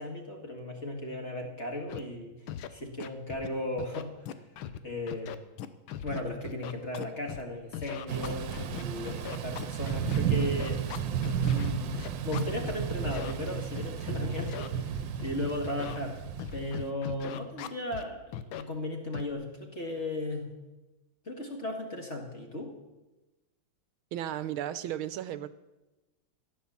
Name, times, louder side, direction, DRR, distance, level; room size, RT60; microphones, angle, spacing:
voice 1, 0.0-2.3 2.7-4.3 4.8-5.4 6.0-10.9 11.4-16.2 16.5-20.4 21.3-22.8, left 1 dB, 35° left, 2 dB, 2.1 m, -36 dB
Scratching (performance technique), 1.9-2.0 2.5-2.7 3.0-3.5 3.8-4.8 5.1-7.4 7.7-12.8 13.1-13.3 13.8-14.7 15.2-15.3 15.6-16.0 16.4-18.0 18.3-18.6 19.1-19.3, left 10 dB, 75° left, 1.6 m, -39 dB
Thunder / Rain, 8.1-16.9, right 9 dB, 65° right, 1.5 m, -33 dB
voice 2, 24.1-25.5, right 11 dB, 85° right, 14 dB, 1.5 m, -34 dB
15.0 x 10.0 x 7.1 m, 1.1 s
omnidirectional pair, 2.3 m